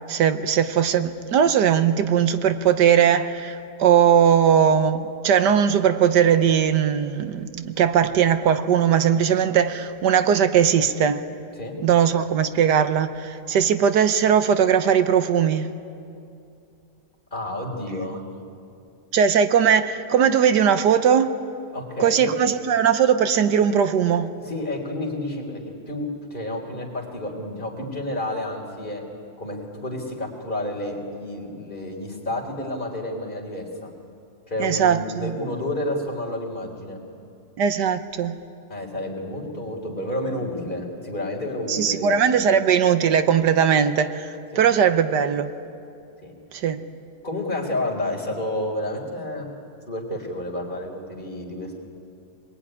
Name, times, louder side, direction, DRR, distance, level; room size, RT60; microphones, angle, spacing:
voice 1, 0.1-11.2 11.8-15.7 19.1-21.5 22.0-24.3 34.6-35.3 37.6-38.4 41.7-44.3 44.5-45.5 46.5-46.8, right 8 dB, 80° right, 1.6 m, -19 dB
voice 2, 17.3-18.2 21.7-22.3 24.4-29.0 29.4-33.9 34.5-37.0 38.7-42.5 44.5-44.7 46.2-46.3 47.2-49.5 49.9-51.7, left 1 dB, 30° left, 3.8 m, -30 dB
24.5 x 21.5 x 9.9 m
omnidirectional pair, 1.8 m